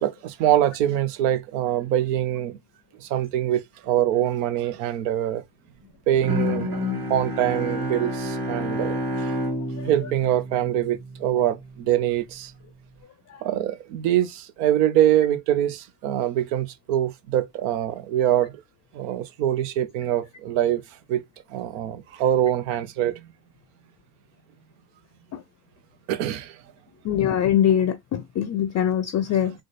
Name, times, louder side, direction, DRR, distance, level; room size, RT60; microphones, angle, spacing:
voice 1, 0.0-2.6 3.0-5.4 6.1-6.7 7.1-9.3 9.8-12.5 13.4-18.6 18.9-20.8 21.1-21.2 21.5-23.3 26.1-26.6, right 11 dB, 85° right, 0.7 m, -24 dB
Bowed string instrument, 6.2-11.3, left 1 dB, 50° right, 1.8 m, -29 dB
voice 2, 27.0-29.5, left 10 dB, 35° left, 0.4 m, -23 dB
3.9 x 2.0 x 3.2 m
supercardioid pair, 65°, 46 cm